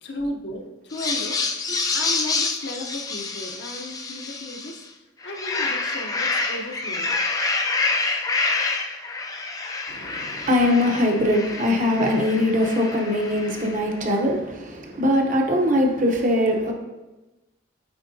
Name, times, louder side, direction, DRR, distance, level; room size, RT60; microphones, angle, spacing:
voice 1, 0.0-4.9 5.2-7.2, left 1 dB, 60° left, 2 dB, 0.7 m, -35 dB
sound 1, 0.9-4.8 5.2-13.9, left 3 dB, 20° left, 0.3 m, -27 dB
voice 2, 9.9-16.7, left 1 dB, 40° right, 2 dB, 0.8 m, -22 dB
7.9 x 4.6 x 2.7 m, 1.1 s
head